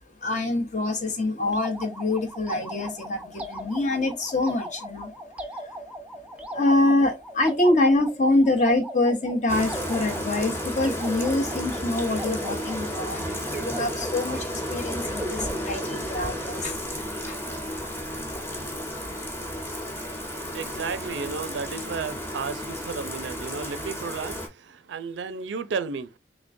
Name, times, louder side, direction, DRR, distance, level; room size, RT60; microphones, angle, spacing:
voice 1, 0.2-5.1 5.5-5.8 6.5-17.4, left 2 dB, 45° left, 0.8 m, -25 dB
sound 1, 1.5-16.7, right 1 dB, 5° right, 0.4 m, -39 dB
Bathtub (filling or washing), 9.5-24.5, equal, 15° left, 0.9 m, -33 dB
voice 2, 20.3-26.2, right 5 dB, 85° right, 0.4 m, -33 dB
3.6 x 3.2 x 2.5 m
head